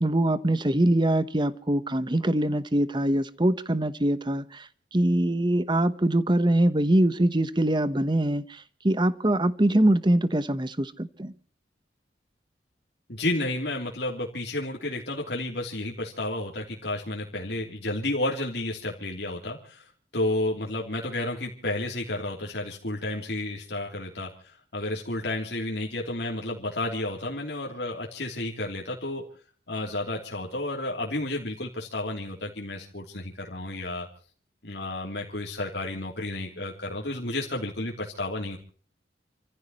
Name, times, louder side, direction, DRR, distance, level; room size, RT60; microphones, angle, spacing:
voice 1, 0.0-11.3, right 1 dB, 25° right, 14 dB, 1.0 m, -23 dB
voice 2, 13.1-19.9 20.1-29.2 29.7-34.1 34.6-38.6, left 1 dB, 65° left, -1 dB, 3.2 m, -31 dB
29.0 x 15.5 x 3.1 m, 0.43 s
head